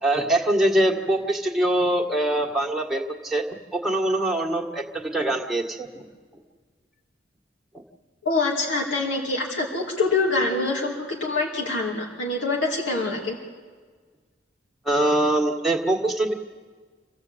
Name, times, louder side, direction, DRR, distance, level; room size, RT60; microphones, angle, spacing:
voice 1, 0.0-3.4 3.7-6.0 14.8-16.3, right 1 dB, ahead, -1 dB, 1.7 m, -23 dB
voice 2, 8.2-13.4, left 3 dB, 90° left, -2 dB, 2.6 m, -25 dB
27.0 x 16.0 x 8.1 m, 1.5 s
head